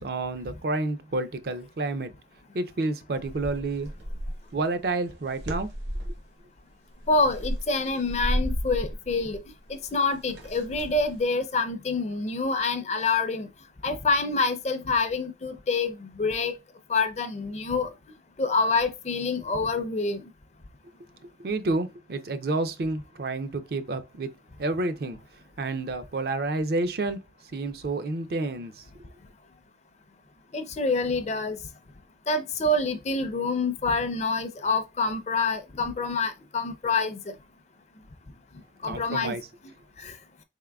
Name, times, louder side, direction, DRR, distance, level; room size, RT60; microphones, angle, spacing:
voice 1, 0.0-2.1 2.5-3.9 4.5-5.7 21.2-24.3 24.6-25.2 25.6-27.2 27.5-28.8 38.8-39.4, right 2 dB, 55° right, 0.4 m, -29 dB
sound 1, 3.2-4.5 5.1-6.2 6.9-11.2, equal, 75° right, 0.9 m, -33 dB
voice 2, 7.1-9.4 9.7-13.5 13.8-16.6 16.9-17.9 18.4-20.2 30.5-31.6 32.3-37.3 38.8-39.4 40.0-40.2, left 3 dB, 35° left, 0.4 m, -27 dB
4.0 x 3.6 x 2.2 m
head